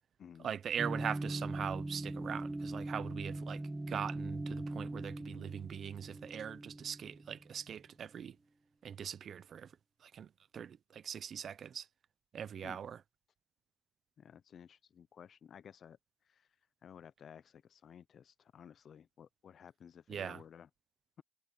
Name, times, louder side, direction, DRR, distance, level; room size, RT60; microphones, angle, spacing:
voice 1, 0.4-3.6 3.9-8.4 8.8-9.7 10.0-11.9 12.3-13.0 20.1-20.4, right 8 dB, 55° right, 0.8 m, -41 dB
sound 1, 0.8-7.6, right 2 dB, 15° right, 0.3 m, -41 dB
voice 2, 14.2-16.0 16.3-16.5 16.8-20.7, left 8 dB, 55° left, 0.6 m, -55 dB
cardioid pair, 90°, 0 cm